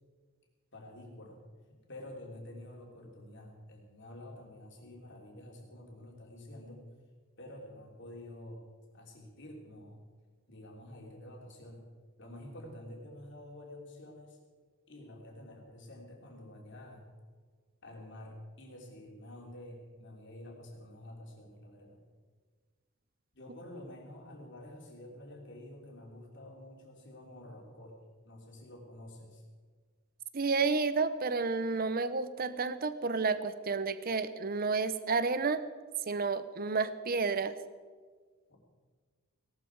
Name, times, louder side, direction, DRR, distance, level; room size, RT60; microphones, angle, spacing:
voice 1, 0.7-1.4 1.9-6.8 7.4-8.7 8.9-10.0 10.5-11.8 12.2-14.4 14.9-17.1 17.8-22.0 23.3-28.0 28.2-29.4 38.5-38.6, left 1 dB, 55° left, 0 dB, 3.1 m, -49 dB
voice 2, 30.3-35.6 36.1-37.5, right 4 dB, 40° right, 13 dB, 0.7 m, -31 dB
17.5 x 12.5 x 4.7 m, 1.5 s
head